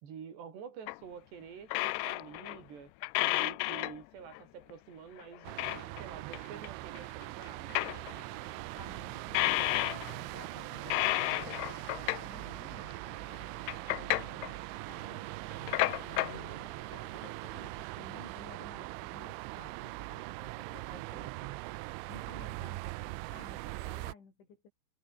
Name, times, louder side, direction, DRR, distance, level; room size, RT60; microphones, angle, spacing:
voice 1, 0.0-2.9 3.2-5.5 6.0-7.8, right 7 dB, 65° right, 5.7 m, -48 dB
sound 1, 0.9-1.0 1.7-2.6 3.0-4.0 4.3-4.4 4.7-4.8 5.2-6.0 6.3-6.4 6.6-6.7 7.0-8.2 9.3-10.2 10.8-12.4 12.9-13.0 13.3-14.5 15.5-16.4 16.9-17.0 17.2-17.3, left 22 dB, 90° left, 2.4 m, -32 dB
sound 2, 5.4-24.1, right 23 dB, 85° right, 3.0 m, -41 dB
voice 2, 8.7-9.8 10.2-11.4 12.2-13.0 13.9-15.2 15.5-15.8 16.1-16.7 17.1-21.6 22.1-24.7, left 5 dB, 70° left, 8.9 m, -54 dB
omnidirectional pair, 5.5 m